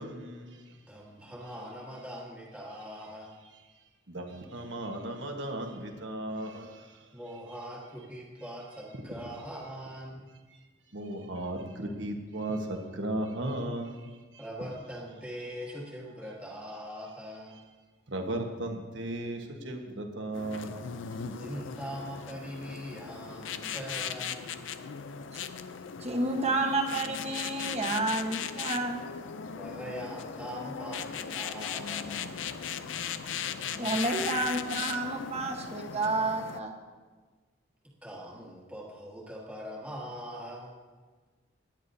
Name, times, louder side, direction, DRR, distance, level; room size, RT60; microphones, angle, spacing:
voice 1, 0.0-0.8 4.1-7.0 10.9-14.4 18.1-21.0, right 1 dB, 70° right, 3 dB, 1.4 m, -36 dB
voice 2, 0.8-3.3 7.1-10.3 14.4-17.6 19.9-20.0 21.4-24.6 29.6-32.5 38.0-40.8, equal, 5° right, -4 dB, 1.6 m, -42 dB
sound 1, 20.3-36.6, left 7 dB, 75° left, 0.5 m, -38 dB
voice 3, 26.0-28.9 33.7-36.7, right 2 dB, 35° right, 3 dB, 1.2 m, -30 dB
18.0 x 9.7 x 2.8 m, 1.4 s
head